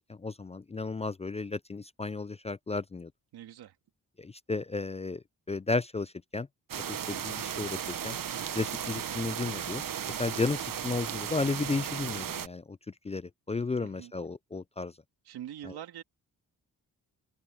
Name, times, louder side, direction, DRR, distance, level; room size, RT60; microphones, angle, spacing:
voice 1, 0.1-3.1 4.2-6.5 6.9-8.2 8.5-14.9 15.6-15.8, left 3 dB, 20° left, 0.4 m, -34 dB
voice 2, 3.3-3.7 13.8-14.1 15.3-16.0, right 11 dB, 85° right, 2.2 m, -43 dB
sound 1, 6.7-12.5, right 9 dB, 60° right, 1.2 m, -35 dB
supercardioid pair, 50°, 38 cm